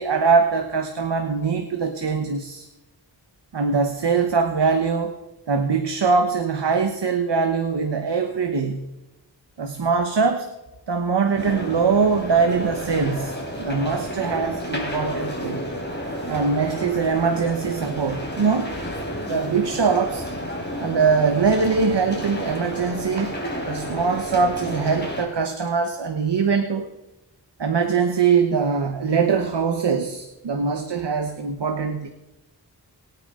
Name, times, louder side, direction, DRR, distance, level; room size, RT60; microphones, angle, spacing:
voice 1, 0.0-2.7 3.5-5.1 5.5-8.9 9.6-10.5 10.9-15.7 16.3-18.8 19.3-20.3 20.8-23.4 23.7-26.9 27.6-32.1, right 5 dB, 75° right, 6 dB, 1.1 m, -22 dB
sound 1, 11.3-25.2, equal, 25° left, 3.8 m, -31 dB
23.0 x 9.2 x 3.7 m, 1.0 s
wide cardioid pair, 60°, 42 cm